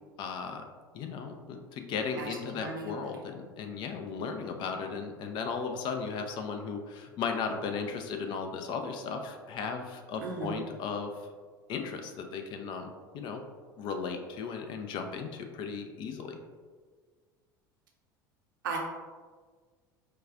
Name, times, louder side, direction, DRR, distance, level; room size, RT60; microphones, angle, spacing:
voice 1, 0.2-0.6 0.9-11.1 11.7-13.4 13.8-16.4, left 5 dB, 45° left, 5 dB, 0.4 m, -36 dB
voice 2, 2.2-2.9 10.2-10.6 18.6-18.8, right 4 dB, 70° right, 1 dB, 0.6 m, -36 dB
4.7 x 2.3 x 2.4 m, 1.5 s
figure-of-eight pair, 70°, 11 cm